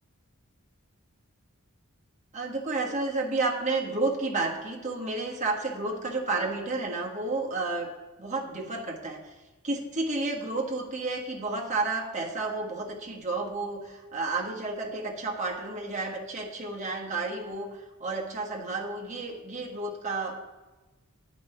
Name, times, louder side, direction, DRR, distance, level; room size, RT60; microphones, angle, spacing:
voice 1, 2.3-7.9 8.2-9.3 9.6-20.4, right 3 dB, 35° right, -1 dB, 1.5 m, -31 dB
9.3 x 5.2 x 6.7 m, 1.2 s
head